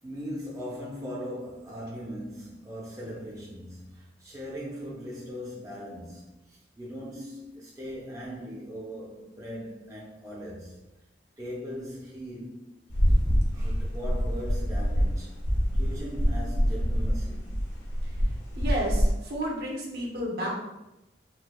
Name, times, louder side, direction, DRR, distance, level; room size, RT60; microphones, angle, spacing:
voice 1, 0.0-10.8 11.4-12.6 13.0-15.3 15.7-17.6, equal, 20° right, 0.5 m, -39 dB
sound 1, 12.9-19.1, equal, 80° left, 0.7 m, -25 dB
voice 2, 18.6-20.5, right 1 dB, 60° right, 0.9 m, -31 dB
4.3 x 2.2 x 2.2 m
head